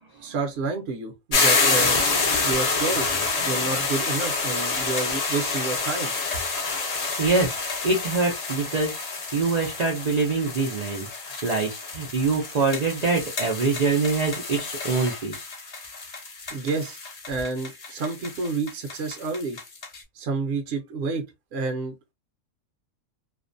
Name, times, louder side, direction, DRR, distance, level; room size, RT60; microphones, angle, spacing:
voice 1, 0.2-2.1 2.4-3.1 3.5-6.1 16.5-17.0 17.3-19.6 20.2-21.2 21.5-21.9, right 4 dB, 60° right, 0.8 m, -29 dB
sound 1, 1.3-20.0, left 4 dB, 50° left, 0.4 m, -28 dB
voice 2, 3.4-3.7 7.2-7.6 7.8-9.0 9.3-15.5, right 4 dB, 80° right, 0.3 m, -25 dB
2.5 x 2.1 x 2.5 m
omnidirectional pair, 1.4 m